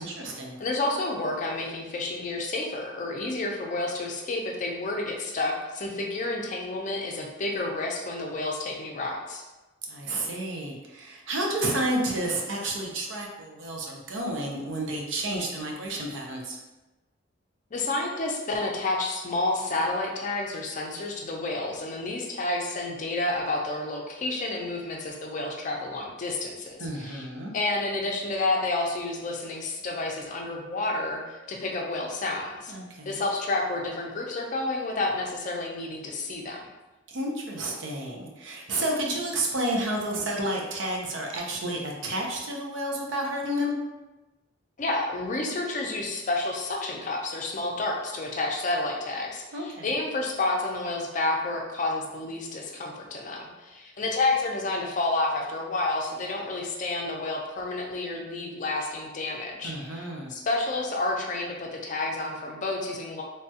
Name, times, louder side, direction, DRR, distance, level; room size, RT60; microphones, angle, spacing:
voice 1, 0.0-0.6 9.9-16.6 26.8-27.5 32.7-33.2 37.1-43.8 49.5-50.0 59.6-60.3, right 1 dB, 75° right, -1 dB, 0.6 m, -31 dB
voice 2, 0.6-9.4 17.7-27.2 27.5-32.7 33.0-36.7 44.8-63.2, left 2 dB, 40° left, 0 dB, 0.5 m, -30 dB
3.2 x 2.3 x 2.7 m, 1.1 s
head